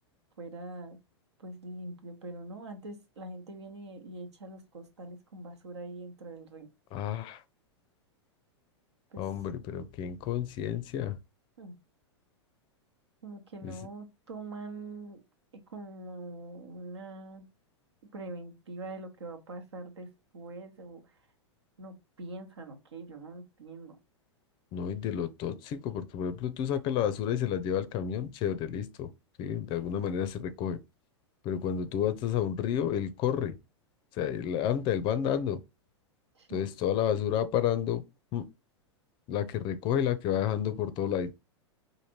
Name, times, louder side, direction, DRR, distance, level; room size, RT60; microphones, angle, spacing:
voice 1, 0.4-1.0 1.4-6.7 9.1-9.2 11.6-11.7 13.2-15.2 15.7-17.5 18.1-20.1 20.3-21.0 21.8-24.0 36.3-36.7, right 2 dB, 70° right, 1.0 m, -43 dB
voice 2, 6.9-7.4 9.2-11.2 13.6-13.7 24.7-29.1 29.4-30.8 31.4-33.5 34.1-35.6 36.5-38.0 38.3-38.4 39.3-41.3, left 9 dB, 30° left, 0.5 m, -30 dB
5.0 x 2.6 x 3.0 m
figure-of-eight pair, 100°, 15 cm